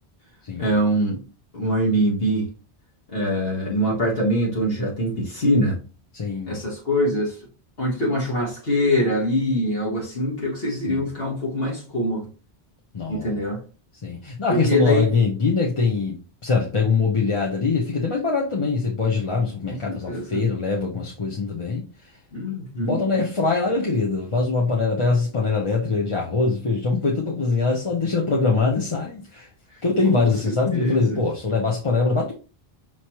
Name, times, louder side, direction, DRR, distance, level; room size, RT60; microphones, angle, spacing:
voice 1, 0.6-1.2 1.5-2.5 3.1-5.8 6.5-7.4 7.8-12.3 13.1-13.6 14.5-15.1 19.7-20.4 22.3-23.0 30.1-31.2, equal, 65° left, 1.6 m, -23 dB
voice 2, 6.1-6.6 10.7-11.0 12.9-13.4 14.0-22.1 22.8-29.5 29.8-32.3, left 4 dB, 35° left, 0.7 m, -23 dB
5.8 x 3.1 x 2.9 m
omnidirectional pair, 1.0 m